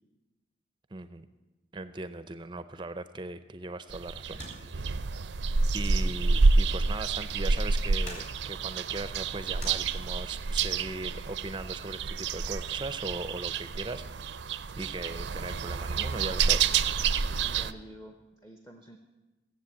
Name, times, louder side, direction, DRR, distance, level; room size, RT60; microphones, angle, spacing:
voice 1, 0.9-1.3 1.7-4.4 4.7-4.9 5.7-14.0 14.7-16.7, right 2 dB, 25° right, 12 dB, 0.5 m, -39 dB
sound 1, 3.9-17.7, right 4 dB, 80° right, 0.5 m, -28 dB
sound 2, 4.1-10.5, left 1 dB, 40° left, 3.8 m, -49 dB
voice 2, 17.4-19.0, right 1 dB, 15° left, 5 dB, 0.8 m, -49 dB
16.5 x 7.6 x 8.4 m, 1.1 s
head